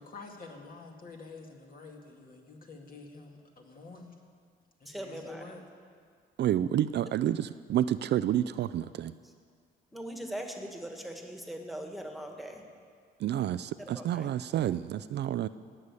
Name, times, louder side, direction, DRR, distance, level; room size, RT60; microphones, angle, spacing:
voice 1, 0.0-4.1 4.8-5.6, left 3 dB, 45° left, 1 dB, 2.1 m, -48 dB
voice 2, 4.9-5.4 9.9-12.6 13.9-14.3, right 1 dB, ahead, 3 dB, 1.8 m, -40 dB
voice 3, 6.4-9.1 13.2-15.5, right 11 dB, 60° right, 14 dB, 0.4 m, -29 dB
17.5 x 6.6 x 8.3 m, 2.1 s
cardioid pair, 90°, 20 cm